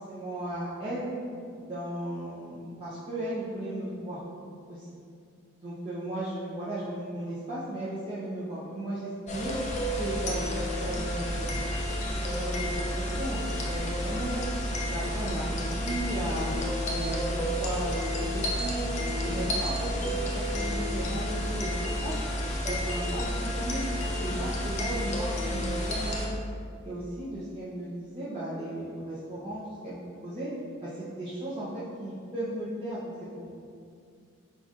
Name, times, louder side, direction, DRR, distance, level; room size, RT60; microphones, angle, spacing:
voice 1, 0.1-1.1 1.6-4.2 4.7-4.9 5.6-9.6 10.0-11.7 12.0-14.4 14.8-16.5 16.9-22.2 22.6-23.8 24.2-26.4 26.8-30.5 30.8-33.0 33.3-33.5, right 1 dB, 25° right, -11 dB, 0.7 m, -35 dB
sound 1, 9.3-26.3, equal, 35° left, 0.5 m, -31 dB
4.8 x 3.9 x 2.5 m, 2.3 s
head